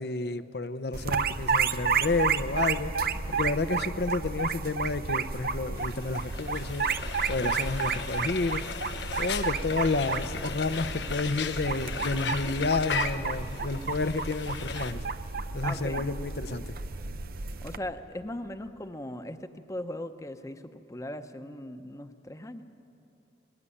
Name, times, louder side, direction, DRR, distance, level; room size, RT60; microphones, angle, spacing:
voice 1, 0.0-6.9 7.3-8.6 9.2-15.0 15.5-16.7, left 3 dB, 60° left, 14 dB, 0.7 m, -30 dB
sound 1, 0.9-17.8, right 5 dB, 55° right, 0.7 m, -31 dB
Frying (food), 5.8-14.9, left 6 dB, 90° left, 1.1 m, -37 dB
voice 2, 15.6-16.1 17.6-22.6, left 1 dB, 20° left, 9 dB, 0.8 m, -39 dB
20.5 x 18.0 x 9.9 m, 2.9 s
head